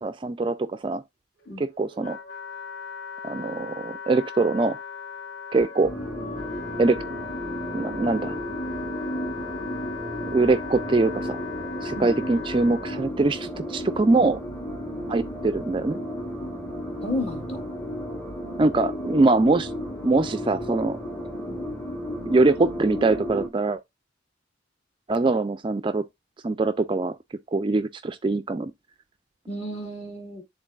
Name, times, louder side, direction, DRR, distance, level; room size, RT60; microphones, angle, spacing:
voice 1, 0.0-1.0 1.6-2.2 3.2-4.8 5.5-5.9 6.8-7.0 7.7-8.4 10.3-11.4 11.8-14.4 15.1-16.0 18.6-19.7 20.0-21.0 22.2-23.8 25.1-26.1 26.4-27.2 27.5-28.7, right 3 dB, 25° right, 0.3 m, -23 dB
Wind instrument woodwind instrument, 1.4-13.0, left 6 dB, 65° left, 1.9 m, -38 dB
sound 1, 5.8-23.5, equal, 10° left, 1.0 m, -33 dB
voice 2, 17.0-17.6 21.5-21.6 29.5-30.4, left 1 dB, 35° left, 2.1 m, -32 dB
11.5 x 3.8 x 2.3 m
head